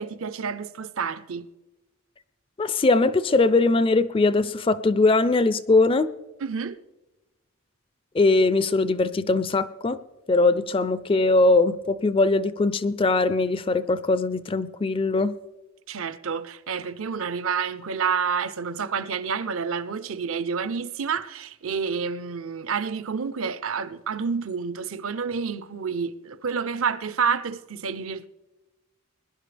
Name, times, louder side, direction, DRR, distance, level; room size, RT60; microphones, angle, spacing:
voice 1, 0.0-1.5 6.4-6.8 15.9-28.3, right 6 dB, 65° right, 0.6 m, -29 dB
voice 2, 2.6-6.1 8.1-10.0 10.3-15.4, left 3 dB, 25° left, 0.4 m, -21 dB
21.0 x 11.0 x 3.3 m
head